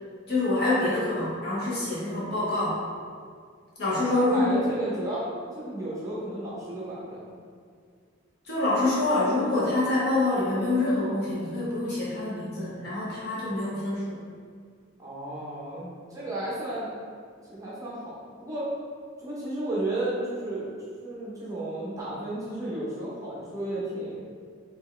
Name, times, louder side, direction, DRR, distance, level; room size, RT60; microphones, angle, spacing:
voice 1, 0.3-2.8 3.8-4.6 8.4-14.2, left 2 dB, 50° left, -8 dB, 1.4 m, -26 dB
voice 2, 3.9-5.3 5.5-7.3 15.0-16.9 17.5-18.7 19.2-20.7 21.0-24.2, right 1 dB, 15° right, -8 dB, 0.8 m, -33 dB
4.5 x 2.9 x 3.2 m, 2.1 s
head